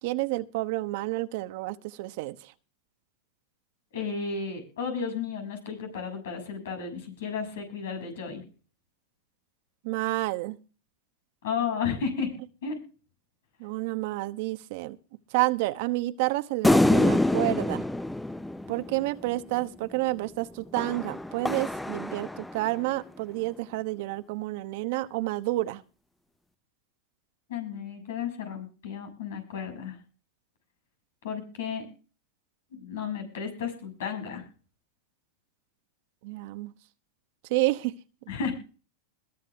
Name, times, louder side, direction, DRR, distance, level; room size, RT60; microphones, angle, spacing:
voice 1, 0.0-2.3 9.8-10.6 13.6-15.0 15.3-17.8 18.7-25.8 36.2-36.7 37.5-37.9, right 19 dB, 60° right, 11 dB, 1.1 m, -29 dB
voice 2, 3.9-8.4 11.4-12.3 12.6-12.8 27.5-30.0 31.2-31.9 32.7-34.4 38.3-38.5, left 6 dB, 75° left, 5 dB, 6.9 m, -33 dB
sound 1, 16.6-19.3 20.8-22.8, left 1 dB, 5° left, 0.6 m, -26 dB
22.0 x 8.3 x 3.5 m, 0.35 s
hypercardioid pair, 110°, 0 cm